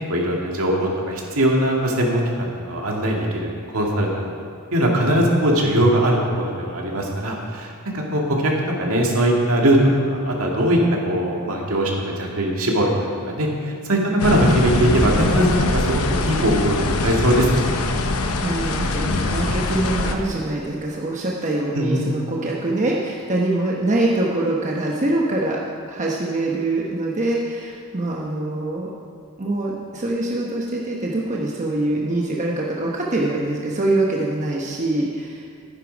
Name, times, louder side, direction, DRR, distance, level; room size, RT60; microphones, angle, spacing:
voice 1, 0.0-4.3 4.7-8.5 8.8-9.8 10.1-10.8 11.0-17.8 21.7-22.0, right 1 dB, 70° right, -1 dB, 2.1 m, -21 dB
sound 1, 14.2-20.1, left 2 dB, 75° left, 0.9 m, -22 dB
voice 2, 18.0-25.6 25.9-28.9 29.4-35.5, right 2 dB, 35° right, -3 dB, 1.0 m, -24 dB
11.5 x 10.0 x 5.2 m, 2.3 s
head